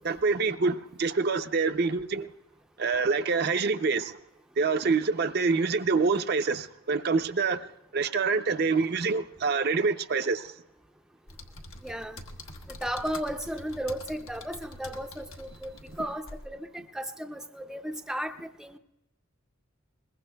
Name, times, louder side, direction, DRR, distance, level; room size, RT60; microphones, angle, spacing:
voice 1, 0.0-2.3 2.8-4.2 4.6-7.7 7.9-10.5, right 4 dB, 50° right, 0.5 m, -26 dB
sound 1, 11.3-16.5, left 1 dB, 90° left, 1.3 m, -45 dB
voice 2, 11.8-12.2 12.8-18.8, equal, 5° right, 0.5 m, -35 dB
22.0 x 21.0 x 2.2 m
head